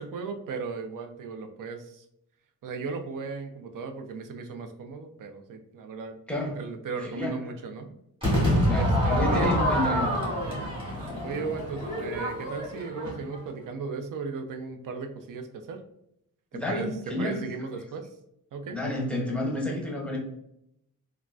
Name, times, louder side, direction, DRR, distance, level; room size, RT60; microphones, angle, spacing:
voice 1, 0.0-2.1 2.6-6.2 6.5-7.9 8.7-9.5 10.5-10.7 11.2-15.8 16.5-18.1 18.5-18.8, right 4 dB, 65° right, 6 dB, 0.5 m, -36 dB
voice 2, 6.3-6.6 7.0-7.4 8.6-10.2 16.5-17.5 18.7-20.2, left 1 dB, 5° left, -2 dB, 0.7 m, -30 dB
Crowd / Fireworks, 8.2-13.5, equal, 15° right, 1.4 m, -27 dB
3.7 x 2.2 x 2.3 m, 0.77 s
wide cardioid pair, 110°, 35 cm